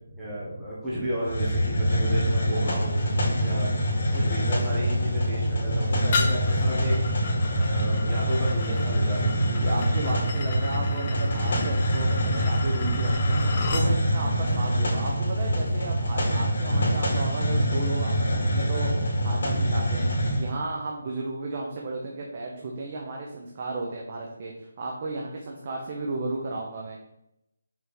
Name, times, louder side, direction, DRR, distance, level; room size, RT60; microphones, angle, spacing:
voice 1, 0.1-3.0 3.3-7.0 7.4-9.6, equal, 5° right, -11 dB, 1.2 m, -33 dB
Hiss, 1.2-20.5, equal, 50° left, 2.4 m, -25 dB
sound 1, 6.1-13.9, left 4 dB, 25° left, 0.6 m, -35 dB
voice 2, 9.4-20.1 20.4-27.0, right 2 dB, 30° right, -1 dB, 0.7 m, -34 dB
5.7 x 3.6 x 5.8 m, 0.84 s
hypercardioid pair, 175°, 0 cm